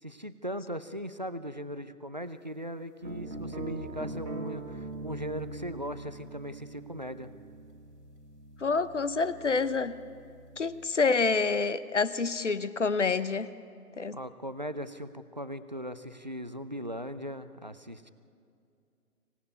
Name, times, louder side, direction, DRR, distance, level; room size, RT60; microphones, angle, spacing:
voice 1, 0.0-7.3 14.1-18.1, equal, 30° right, 12 dB, 0.5 m, -39 dB
sound 1, 3.0-10.9, right 3 dB, 85° right, 2.5 m, -43 dB
voice 2, 8.6-10.0 10.6-13.5 14.0-14.2, left 4 dB, 50° left, 15 dB, 0.9 m, -27 dB
25.0 x 17.5 x 9.5 m, 2.4 s
figure-of-eight pair, 155°, 46 cm